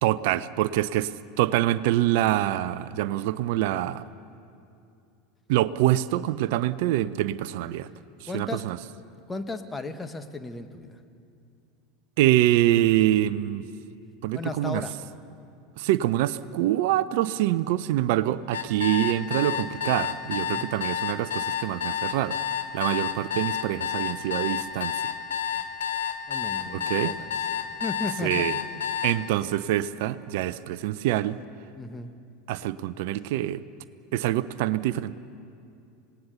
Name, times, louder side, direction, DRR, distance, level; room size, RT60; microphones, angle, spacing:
voice 1, 0.0-1.1 1.4-4.0 5.5-7.9 8.2-8.8 12.2-13.7 14.2-14.8 15.8-22.4 22.7-25.1 26.7-27.1 28.2-28.5 29.0-31.4 32.5-33.6 34.1-35.1, right 14 dB, 65° right, 15 dB, 0.6 m, -25 dB
voice 2, 8.3-8.6 9.3-11.0 14.3-15.0 20.4-20.7 26.3-27.3 27.8-28.5 31.7-32.1, left 3 dB, 15° left, 8 dB, 1.6 m, -35 dB
sound 1, 18.5-29.2, left 8 dB, 80° left, 1.4 m, -29 dB
26.5 x 19.0 x 6.9 m, 2.5 s
hypercardioid pair, 85°, 0 cm